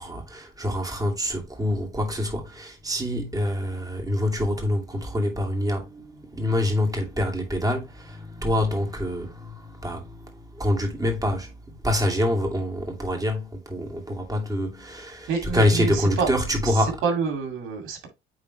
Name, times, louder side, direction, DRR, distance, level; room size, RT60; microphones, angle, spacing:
voice 1, 0.0-17.0, left 1 dB, 15° right, 2.6 m, -26 dB
voice 2, 15.3-16.3 17.0-18.1, right 5 dB, 90° right, 2.3 m, -27 dB
8.8 x 3.8 x 3.1 m
cardioid pair, 90°, 20 cm